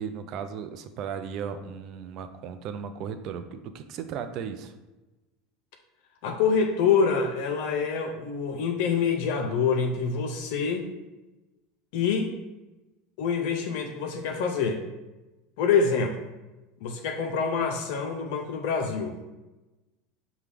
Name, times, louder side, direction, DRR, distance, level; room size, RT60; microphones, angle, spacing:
voice 1, 0.0-4.7, right 7 dB, 50° right, 8 dB, 0.4 m, -36 dB
voice 2, 6.2-10.9 11.9-12.3 13.2-14.8 15.6-16.2 16.8-19.2, left 5 dB, 65° left, 3 dB, 0.4 m, -26 dB
5.8 x 2.2 x 3.4 m, 1.1 s
hypercardioid pair, 85°, 0 cm